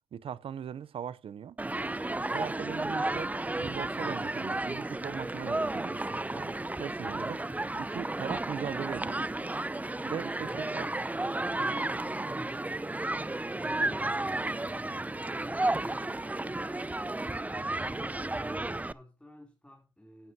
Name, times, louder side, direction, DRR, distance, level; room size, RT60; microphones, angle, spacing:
voice 1, 0.1-1.6 2.3-7.5 7.8-9.2 10.0-10.9, right 8 dB, 70° right, 0.6 m, -39 dB
Human group actions, 1.6-18.9, right 2 dB, 15° right, 0.6 m, -33 dB
voice 2, 10.4-20.3, left 1 dB, 10° left, 3.0 m, -52 dB
12.5 x 9.7 x 2.7 m
supercardioid pair, 50°, 10 cm